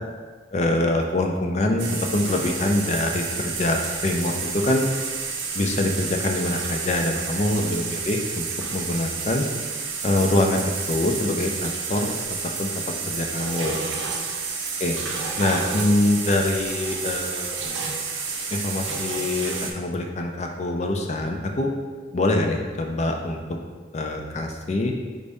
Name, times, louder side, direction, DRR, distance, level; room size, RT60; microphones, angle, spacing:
voice 1, 0.5-4.9 5.5-9.5 10.0-10.6 10.9-12.2 12.6-13.8 14.8-15.0 15.4-17.6 18.5-21.7 22.1-23.4 23.9-24.9, left 1 dB, 35° left, 3 dB, 0.4 m, -24 dB
sound 1, 1.8-19.7, right 5 dB, 90° right, 0.6 m, -30 dB
5.2 x 2.6 x 3.4 m, 1.4 s
head